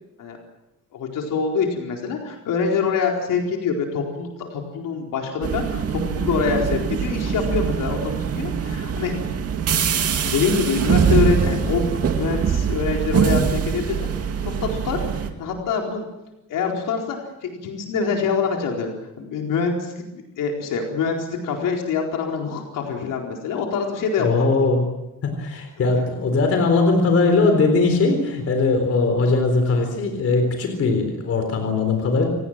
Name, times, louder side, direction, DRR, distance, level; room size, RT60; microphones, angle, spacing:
voice 1, 0.9-8.0 8.3-9.1 10.2-14.1 14.4-15.0 15.4-16.0 16.5-24.6 25.8-26.0, left 5 dB, 90° left, 1 dB, 4.4 m, -25 dB
sound 1, 5.4-15.3, right 7 dB, 50° right, 2.3 m, -23 dB
voice 2, 24.2-24.8 25.2-32.3, left 3 dB, 50° left, 5 dB, 4.1 m, -20 dB
28.5 x 18.5 x 7.6 m, 0.94 s
cardioid pair, 180°, 31 cm